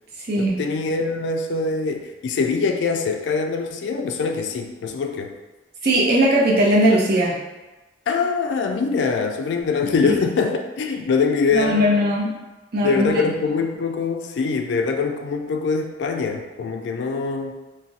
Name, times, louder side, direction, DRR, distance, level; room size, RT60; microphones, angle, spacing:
voice 1, 0.4-5.3 8.1-11.9 12.8-17.5, left 4 dB, 75° left, 4 dB, 0.3 m, -23 dB
voice 2, 5.8-7.4 10.0-10.1 11.5-12.3 12.7-13.3, equal, 60° right, -4 dB, 0.7 m, -19 dB
2.4 x 2.1 x 3.9 m, 1.1 s
head